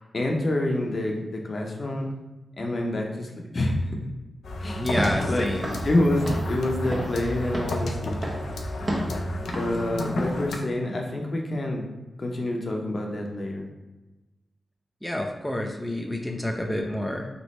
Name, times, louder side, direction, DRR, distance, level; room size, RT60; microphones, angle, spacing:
voice 1, 0.1-2.1 2.6-3.9 4.6-5.0 5.3-5.5 5.8-8.2 9.5-11.8 12.2-13.6, left 1 dB, 55° left, 1 dB, 0.8 m, -27 dB
sound 1, 4.4-10.6, left 1 dB, 85° left, 0.5 m, -32 dB
voice 2, 4.8-5.8 15.0-17.3, left 1 dB, 5° left, 1 dB, 0.6 m, -29 dB
Walk footsteps / Siren, 4.8-10.4, right 1 dB, 40° right, 1.2 m, -33 dB
3.4 x 3.2 x 4.1 m, 1.1 s
cardioid pair, 45°, 0 cm